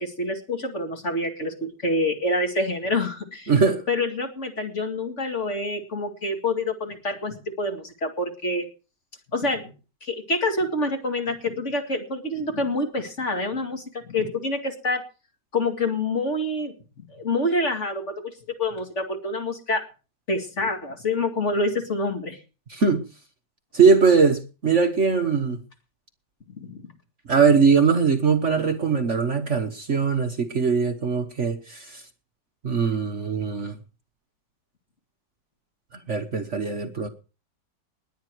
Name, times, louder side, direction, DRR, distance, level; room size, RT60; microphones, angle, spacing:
voice 1, 0.0-3.5 3.9-8.7 9.3-9.7 10.0-15.0 15.5-16.7 17.1-18.3 18.6-19.9 20.3-22.4 26.6-26.8, left 2 dB, 40° left, 2.6 m, -27 dB
voice 2, 3.5-3.8 22.7-23.0 23.7-25.6 27.3-32.0 32.6-33.8 35.9-37.1, right 5 dB, 45° right, 1.4 m, -21 dB
20.0 x 9.3 x 4.7 m
omnidirectional pair, 1.9 m